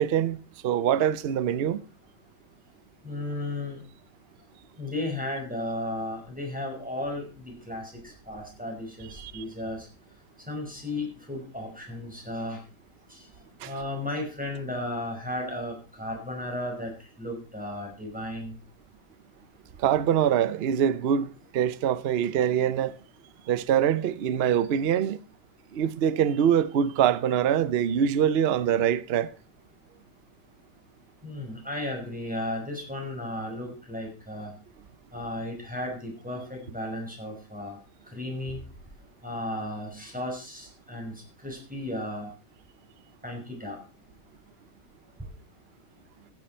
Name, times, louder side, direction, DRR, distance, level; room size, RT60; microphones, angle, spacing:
voice 1, 0.0-1.8 9.2-9.4 13.6-13.7 19.8-23.0 23.5-25.2 25.7-29.3, right 9 dB, 55° right, 0.7 m, -24 dB
voice 2, 3.0-3.8 4.8-9.9 10.5-12.6 13.1-13.3 13.6-16.9 17.2-18.5 31.2-34.5 35.1-37.8 38.1-38.6 39.2-42.3 43.2-43.8, left 1 dB, 5° right, 5.5 m, -34 dB
15.5 x 9.4 x 4.4 m
omnidirectional pair, 1.9 m